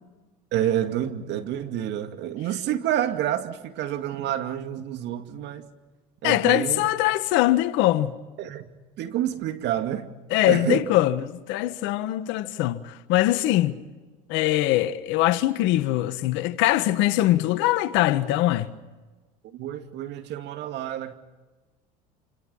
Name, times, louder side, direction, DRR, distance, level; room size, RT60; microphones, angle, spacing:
voice 1, 0.5-5.7 6.2-6.9 8.4-8.7 9.0-10.1 10.4-10.9 19.5-21.1, right 11 dB, 60° right, 2.3 m, -28 dB
voice 2, 6.2-8.1 10.3-13.8 14.3-18.7, left 15 dB, 65° left, 1.5 m, -22 dB
28.0 x 26.5 x 5.6 m
hypercardioid pair, 80°, 21 cm